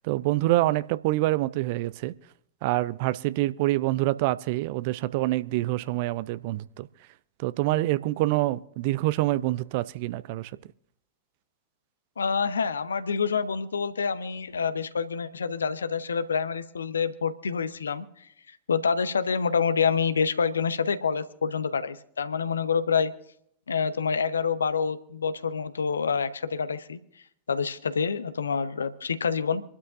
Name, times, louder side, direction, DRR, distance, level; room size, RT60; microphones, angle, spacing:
voice 1, 0.0-2.1 2.6-6.9 7.4-10.5, right 17 dB, 50° right, 0.5 m, -26 dB
voice 2, 12.2-18.1 18.7-23.1 23.7-27.0 27.5-29.6, left 6 dB, 70° left, 0.8 m, -27 dB
26.5 x 12.5 x 2.5 m
figure-of-eight pair, 90°, 0 cm